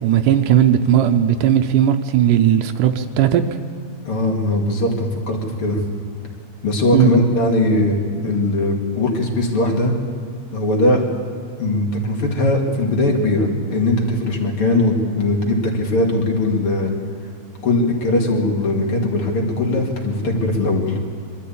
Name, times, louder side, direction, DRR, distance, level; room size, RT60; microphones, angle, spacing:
voice 1, 0.0-3.4 6.9-7.1, right 10 dB, 85° right, 7 dB, 2.3 m, -16 dB
voice 2, 4.0-5.8 6.6-9.9 10.5-11.0 11.6-16.9 17.6-21.0, left 2 dB, 45° left, 1 dB, 3.0 m, -19 dB
23.5 x 13.0 x 8.6 m, 2.2 s
omnidirectional pair, 3.7 m